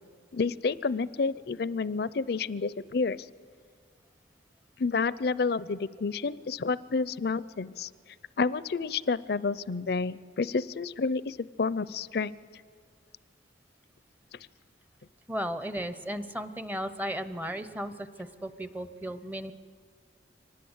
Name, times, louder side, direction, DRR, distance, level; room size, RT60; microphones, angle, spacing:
voice 1, 0.3-3.3 4.8-7.9 8.4-12.3, left 4 dB, 55° left, 18 dB, 0.5 m, -29 dB
voice 2, 15.3-19.5, equal, 10° right, 12 dB, 0.7 m, -35 dB
24.5 x 19.5 x 8.0 m, 2.1 s
head